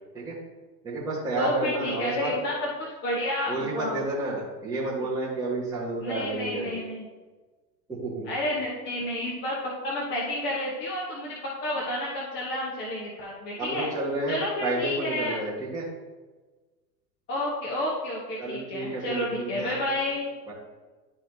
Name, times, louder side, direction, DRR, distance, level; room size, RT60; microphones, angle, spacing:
voice 1, 0.8-2.4 3.5-6.8 7.9-8.3 13.6-15.8 18.4-19.8 20.5-20.6, right 2 dB, 5° right, -9 dB, 1.3 m, -30 dB
voice 2, 1.4-4.0 6.0-7.1 8.2-13.9 14.3-15.4 17.3-20.3, left 1 dB, 25° left, -5 dB, 1.1 m, -30 dB
11.5 x 4.2 x 2.7 m, 1.3 s
supercardioid pair, 145°, 49 cm